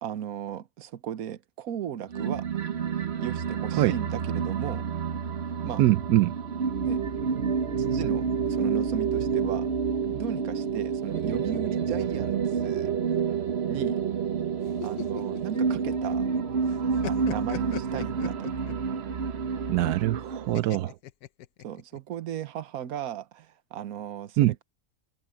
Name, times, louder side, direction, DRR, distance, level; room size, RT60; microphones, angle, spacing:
voice 1, 0.0-2.5 3.2-4.9 5.6-5.8 6.8-7.1 7.8-9.7 10.1-12.9 13.7-14.0 14.8-16.3 16.7-18.5 21.6-24.6, right 10 dB, 70° right, 1.4 m, -36 dB
sound 1, 2.1-20.7, right 6 dB, 50° right, 1.1 m, -29 dB
voice 2, 5.8-6.3 19.7-20.9 24.4-24.5, right 15 dB, 85° right, 1.1 m, -23 dB
sound 2, 14.6-16.4 16.7-18.9 20.5-22.0, left 13 dB, 80° left, 1.2 m, -39 dB
omnidirectional pair, 1.6 m